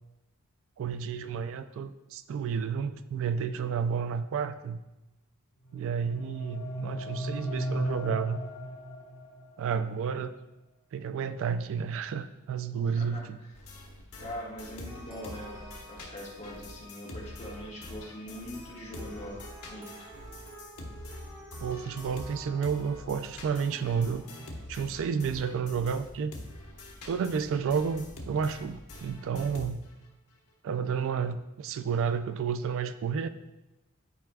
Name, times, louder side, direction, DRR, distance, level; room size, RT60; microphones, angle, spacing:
voice 1, 0.8-4.8 5.7-8.4 9.6-10.4 10.9-13.4 21.6-24.2 24.7-26.3 27.1-29.8 30.6-33.3, right 6 dB, 60° right, 11 dB, 0.3 m, -31 dB
sound 1, 5.6-9.6, right 1 dB, 65° left, 1.6 m, -36 dB
voice 2, 12.9-13.2 14.2-19.4 19.7-20.1, equal, 30° left, -4 dB, 1.5 m, -42 dB
sound 2, 13.5-18.7 18.9-30.1, left 1 dB, 80° left, 1.2 m, -45 dB
sound 3, 14.8-24.6, equal, 20° right, 1.2 m, -49 dB
10.5 x 4.8 x 2.3 m, 0.98 s
head